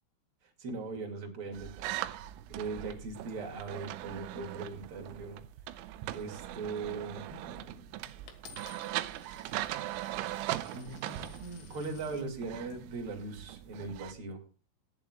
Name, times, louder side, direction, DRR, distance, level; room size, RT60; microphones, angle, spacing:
voice 1, 0.6-1.9 2.5-5.4 6.1-8.1 10.7-14.4, right 4 dB, 40° right, 2 dB, 2.1 m, -40 dB
sound 1, 1.5-14.1, right 14 dB, 85° right, 2.8 m, -40 dB
Coin (dropping), 8.3-12.3 13.0-13.4, left 9 dB, 75° left, 4.0 m, -56 dB
18.5 x 10.5 x 2.4 m, 0.36 s
omnidirectional pair, 6.0 m